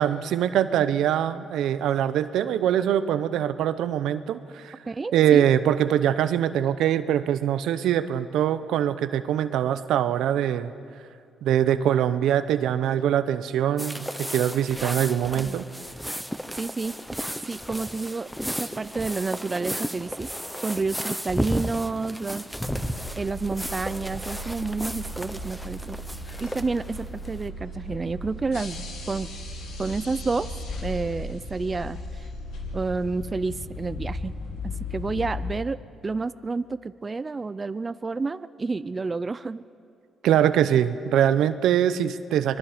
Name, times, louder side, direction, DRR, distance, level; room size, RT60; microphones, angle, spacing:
voice 1, 0.0-4.7 5.1-10.7 11.4-15.6 40.2-42.6, right 10 dB, 80° right, 13 dB, 0.8 m, -23 dB
voice 2, 4.9-5.5 15.4-15.6 16.5-17.0 17.5-20.3 20.6-22.5 23.2-26.0 26.4-29.3 29.8-30.5 30.8-32.3 32.7-34.3 34.9-39.6, right 3 dB, 30° right, 14 dB, 0.5 m, -30 dB
sound 1, 13.8-27.4, equal, ahead, 0.9 m, -34 dB
sound 2, 22.6-35.5, left 1 dB, 80° left, 3.3 m, -36 dB
25.5 x 21.5 x 5.1 m, 2.4 s
cardioid pair, 90°, 0 cm